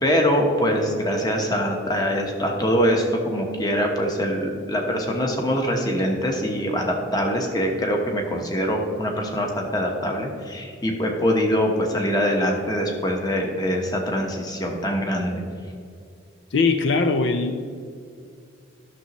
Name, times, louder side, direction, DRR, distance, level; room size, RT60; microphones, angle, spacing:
voice 1, 0.0-15.4, equal, 20° left, 1 dB, 1.1 m, -23 dB
voice 2, 16.5-17.6, left 4 dB, 75° left, 8 dB, 0.5 m, -21 dB
11.5 x 6.7 x 3.0 m, 2.3 s
head